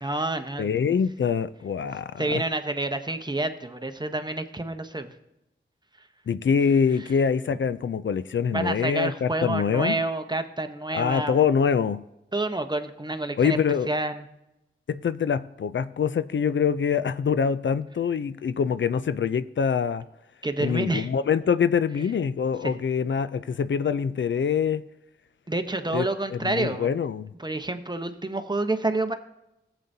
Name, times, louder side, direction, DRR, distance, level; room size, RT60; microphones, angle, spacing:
voice 1, 0.0-0.9 2.2-5.1 8.5-11.4 12.3-13.6 13.9-14.3 20.4-21.1 22.6-22.7 25.5-26.9 27.4-29.1, right 2 dB, 20° right, 0.9 m, -28 dB
voice 2, 0.6-2.4 6.3-10.0 10.9-12.0 13.4-13.9 14.9-20.0 20.6-24.8 25.9-26.0 26.3-27.3, left 6 dB, 65° left, 0.4 m, -24 dB
15.0 x 8.1 x 2.7 m
cardioid pair, 45°, 21 cm